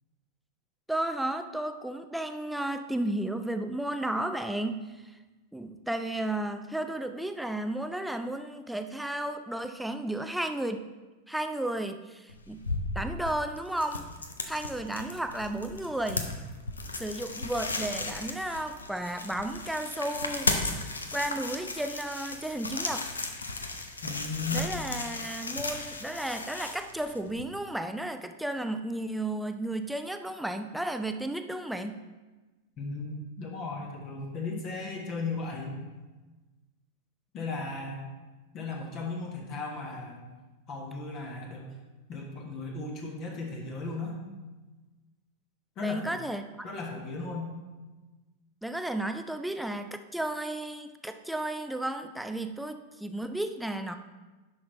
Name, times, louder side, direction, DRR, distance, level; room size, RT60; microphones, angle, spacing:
voice 1, 0.9-5.2 5.5-10.8 11.3-12.6 13.0-14.1 14.4-16.3 17.0-20.5 21.1-23.1 24.5-32.0 45.8-46.4 48.6-54.0, right 1 dB, 5° right, 8 dB, 0.4 m, -33 dB
sound 1, 12.3-27.4, left 3 dB, 75° left, 0.7 m, -35 dB
voice 2, 24.0-24.7 32.8-35.8 37.3-38.0 38.5-40.3 40.7-41.7 42.1-44.2 45.8-46.2 46.6-47.5, left 3 dB, 35° left, 0 dB, 1.4 m, -36 dB
10.5 x 6.0 x 3.1 m, 1.2 s
figure-of-eight pair, 90°, 0 cm